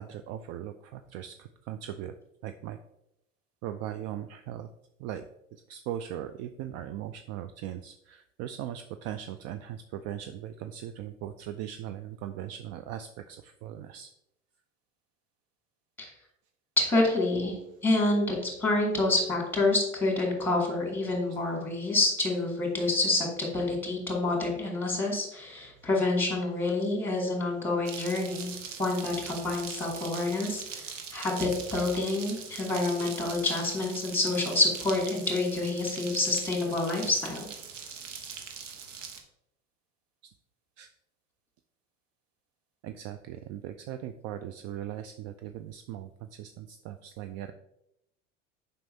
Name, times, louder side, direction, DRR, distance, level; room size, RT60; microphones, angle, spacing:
voice 1, 0.0-2.1 2.4-2.8 3.6-4.7 5.0-5.2 5.7-14.1 40.8-40.9 42.8-46.1 46.4-47.5, right 11 dB, 45° right, 9 dB, 0.4 m, -39 dB
voice 2, 16.8-17.6 17.8-28.5 28.8-37.5, left 2 dB, 5° left, -1 dB, 2.5 m, -28 dB
sound 1, 27.8-39.2, right 6 dB, 80° right, 1.0 m, -41 dB
7.5 x 5.4 x 2.7 m, 0.82 s
hypercardioid pair, 75°, 37 cm